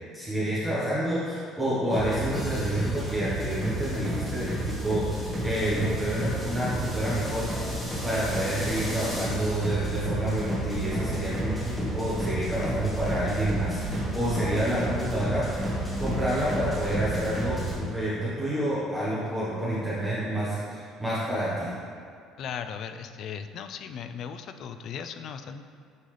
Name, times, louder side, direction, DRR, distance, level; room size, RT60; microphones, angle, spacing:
voice 1, 0.1-7.4 8.0-21.7, right 1 dB, 5° right, -10 dB, 1.2 m, -29 dB
sound 1, 1.9-17.8, equal, 10° left, 1.6 m, -31 dB
voice 2, 22.4-25.7, left 7 dB, 50° left, 9 dB, 0.3 m, -37 dB
9.2 x 4.0 x 3.3 m, 2.2 s
cardioid pair, 145°, 0 cm